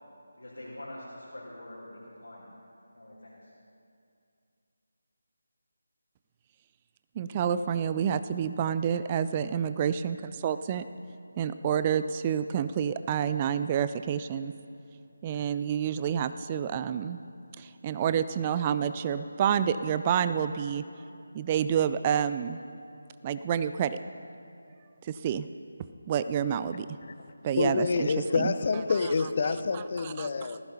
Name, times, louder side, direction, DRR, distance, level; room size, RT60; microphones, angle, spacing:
voice 1, 0.4-2.5 2.9-3.4, left 1 dB, 75° left, -8 dB, 4.0 m, -44 dB
voice 2, 7.2-10.8 11.4-14.5 15.2-17.2 17.6-20.8 21.3-22.6 23.2-24.0 25.0-25.5 26.1-26.9 27.4-28.1 28.4-28.5 30.0-30.3, right 8 dB, 20° right, 12 dB, 0.3 m, -28 dB
voice 3, 27.0-30.6, left 4 dB, 40° left, 11 dB, 0.7 m, -28 dB
19.5 x 15.0 x 2.8 m, 2.5 s
figure-of-eight pair, 155°, 0 cm